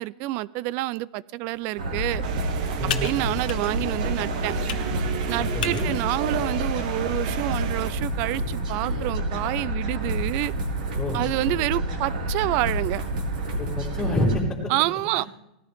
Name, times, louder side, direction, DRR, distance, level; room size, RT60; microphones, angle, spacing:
voice 1, 0.0-2.2 3.0-4.5 5.3-10.5 11.1-13.1 14.7-15.3, right 18 dB, 40° right, 21 dB, 0.4 m, -28 dB
Computer keyboard, 1.5-8.2, left 10 dB, 80° left, 1.5 m, -39 dB
sound 1, 1.8-14.3, right 1 dB, 85° right, 4.5 m, -29 dB
sound 2, 2.2-7.9, right 7 dB, 60° right, 1.4 m, -33 dB
voice 2, 2.8-3.1 5.4-5.9 11.0-11.2 13.6-14.7, left 1 dB, 10° left, -5 dB, 3.7 m, -27 dB
19.0 x 14.0 x 3.6 m, 0.87 s
supercardioid pair, 150°, 5 cm